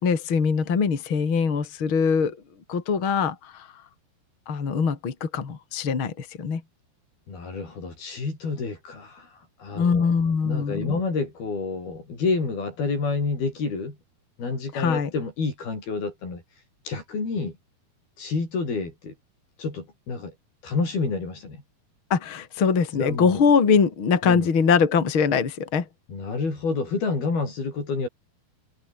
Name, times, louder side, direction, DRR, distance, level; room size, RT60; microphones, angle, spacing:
voice 1, 0.0-2.4 2.7-3.7 4.5-6.6 9.7-10.9 14.7-15.1 22.1-25.8, left 5 dB, 35° left, 3.4 m, -22 dB
voice 2, 7.3-9.3 9.6-10.1 10.4-14.0 14.4-16.4 16.8-17.5 18.2-19.1 19.6-20.3 20.6-21.6 23.0-23.4 24.2-24.5 26.1-28.1, left 4 dB, 80° left, 10.0 m, -29 dB
omnidirectional pair, 4.3 m